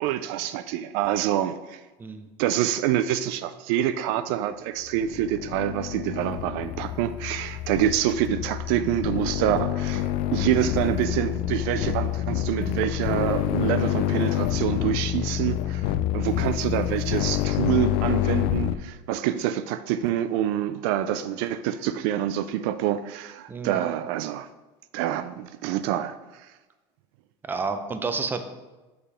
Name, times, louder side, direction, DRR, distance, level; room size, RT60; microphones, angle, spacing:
voice 1, 0.0-1.8 2.4-24.5 24.9-26.5, right 11 dB, 70° right, 0.4 m, -26 dB
sound 1, 4.9-18.8, left 12 dB, 60° left, 0.4 m, -27 dB
voice 2, 23.5-23.8 27.4-28.4, right 4 dB, 15° right, 0.6 m, -30 dB
6.9 x 5.1 x 4.3 m
supercardioid pair, 135°, 13 cm